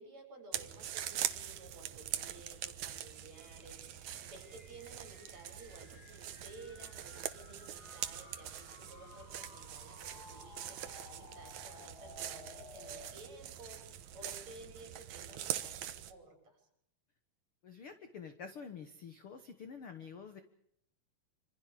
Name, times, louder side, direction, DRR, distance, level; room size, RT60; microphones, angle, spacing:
voice 1, 0.0-16.6, right 2 dB, 45° right, 3 dB, 7.6 m, -55 dB
sound 1, 0.5-16.1, right 11 dB, 65° right, 2.0 m, -43 dB
sound 2, 1.6-13.2, left 3 dB, 35° left, 1.9 m, -57 dB
voice 2, 17.6-20.4, left 6 dB, 60° left, 8 dB, 1.5 m, -48 dB
27.0 x 26.0 x 5.1 m, 0.73 s
omnidirectional pair, 4.5 m